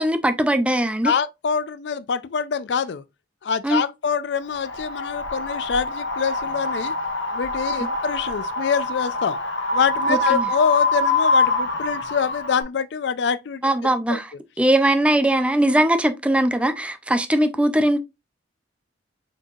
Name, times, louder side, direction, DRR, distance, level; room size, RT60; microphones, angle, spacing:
voice 1, 0.0-1.1 3.6-3.8 10.1-10.5 13.6-14.3 14.6-18.0, right 1 dB, 5° right, 0.4 m, -20 dB
voice 2, 1.0-3.0 3.4-6.9 7.3-9.4 9.7-13.7 14.1-14.2, left 6 dB, 65° left, 0.4 m, -25 dB
Wind, 4.5-12.6, left 3 dB, 90° left, 1.2 m, -25 dB
4.5 x 4.4 x 2.4 m
head